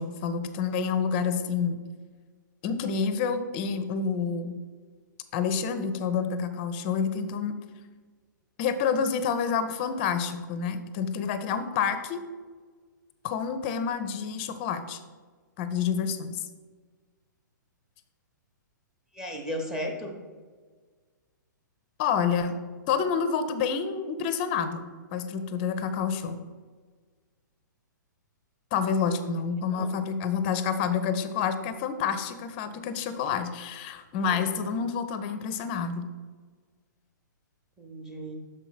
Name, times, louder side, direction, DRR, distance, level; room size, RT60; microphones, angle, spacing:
voice 1, 0.0-1.8 2.6-4.6 5.3-7.6 8.6-12.2 13.2-15.0 15.6-16.4 22.0-22.6 22.9-26.4 28.7-36.1, left 6 dB, 30° left, 11 dB, 0.5 m, -28 dB
voice 2, 19.1-20.2 29.7-29.9 34.2-34.4 37.8-38.4, equal, 5° right, 3 dB, 0.7 m, -35 dB
6.5 x 4.9 x 4.0 m, 1.5 s
figure-of-eight pair, 115°, 11 cm